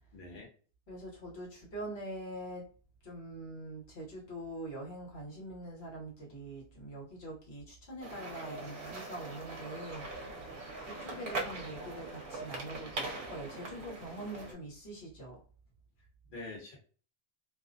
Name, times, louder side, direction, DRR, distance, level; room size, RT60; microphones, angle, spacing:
voice 1, 0.1-0.5 16.0-16.8, left 2 dB, 55° left, -1 dB, 1.0 m, -46 dB
voice 2, 0.9-2.7 3.0-10.1 10.8-15.4, right 1 dB, 80° left, -2 dB, 1.1 m, -44 dB
sound 1, 8.0-14.5, right 2 dB, 60° right, 0.7 m, -41 dB
2.5 x 2.0 x 2.5 m, 0.40 s
omnidirectional pair, 1.0 m